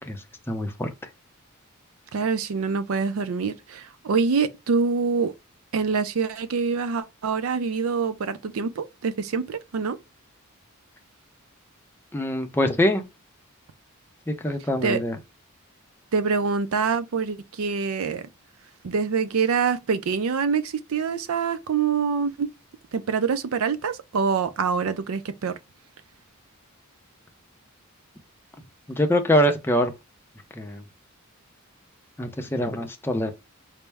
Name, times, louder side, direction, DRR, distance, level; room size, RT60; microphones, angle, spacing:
voice 1, 0.1-0.9 12.1-13.0 14.3-15.2 28.9-29.9 30.6-30.8 32.2-33.3, equal, 10° left, 0.5 m, -24 dB
voice 2, 2.1-5.3 5.7-10.0 14.8-15.0 16.1-18.3 18.8-22.5 22.9-25.6, right 5 dB, 70° right, 0.4 m, -25 dB
4.3 x 2.0 x 3.3 m
head